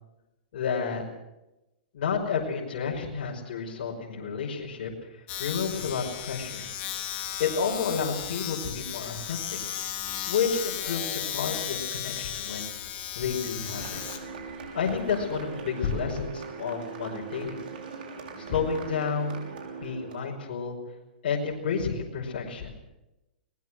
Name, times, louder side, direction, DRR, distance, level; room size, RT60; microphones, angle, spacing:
voice 1, 0.5-1.0 1.9-4.9 5.4-6.7 7.4-9.6 10.3-12.7 13.2-14.0 14.7-17.6 18.4-19.4 19.8-20.8 21.2-22.7, left 6 dB, 60° left, -2 dB, 5.4 m, -30 dB
Domestic sounds home sounds, 5.3-15.7, left 10 dB, 30° left, 2.5 m, -35 dB
sound 1, 13.6-20.4, right 5 dB, 65° right, 6.1 m, -40 dB
23.5 x 20.0 x 6.3 m, 0.95 s
hypercardioid pair, 145°, 5 cm